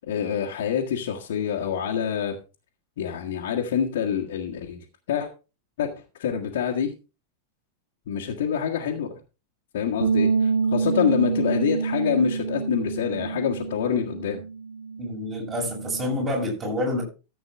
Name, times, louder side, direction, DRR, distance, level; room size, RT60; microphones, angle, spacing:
voice 1, 0.1-2.3 3.0-5.3 5.8-5.9 6.2-6.9 8.1-9.2 9.7-14.4, left 8 dB, 55° left, 1.5 m, -26 dB
sound 1, 10.0-16.3, right 5 dB, 70° right, 0.8 m, -27 dB
voice 2, 15.0-17.0, left 1 dB, 25° right, 6.6 m, -28 dB
14.0 x 7.9 x 3.5 m
figure-of-eight pair, 90°, 0 cm